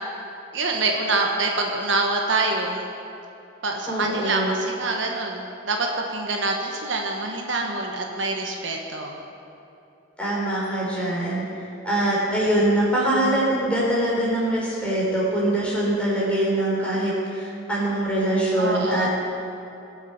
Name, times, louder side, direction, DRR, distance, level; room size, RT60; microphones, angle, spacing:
voice 1, 0.5-2.8 3.6-9.1 18.5-19.1, right 3 dB, 70° right, 1 dB, 1.3 m, -25 dB
voice 2, 3.9-4.5 10.2-11.4 11.8-19.1, right 1 dB, 5° left, -6 dB, 3.9 m, -23 dB
21.5 x 7.2 x 5.9 m, 2.7 s
head